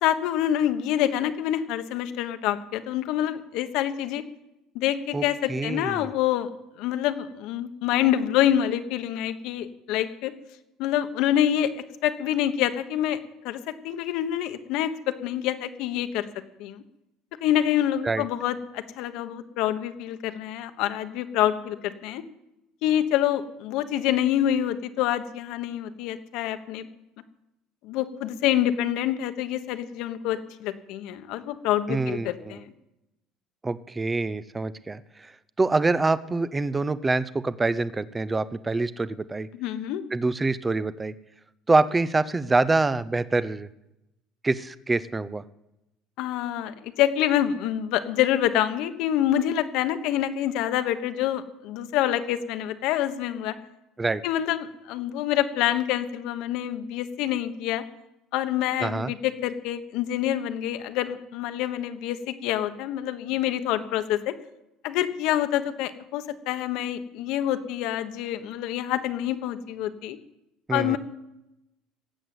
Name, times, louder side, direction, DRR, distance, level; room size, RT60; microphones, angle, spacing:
voice 1, 0.0-4.2 4.7-6.5 6.8-10.3 10.8-11.7 12.0-13.2 13.4-13.6 13.8-16.3 16.6-16.8 17.4-22.2 22.8-26.9 27.8-32.6 39.5-40.0 46.2-53.5 54.2-57.8 58.3-64.3 64.8-70.2 70.7-71.0, left 11 dB, 65° left, 9 dB, 1.2 m, -26 dB
voice 2, 5.1-6.1 18.0-18.2 31.9-32.3 33.6-35.3 35.6-39.5 40.1-41.1 41.7-43.7 44.4-45.4 54.0-54.2 58.8-59.1 70.7-71.0, right 3 dB, 15° right, 17 dB, 0.5 m, -25 dB
17.5 x 8.1 x 7.9 m, 0.91 s
cardioid pair, 145°, 0 cm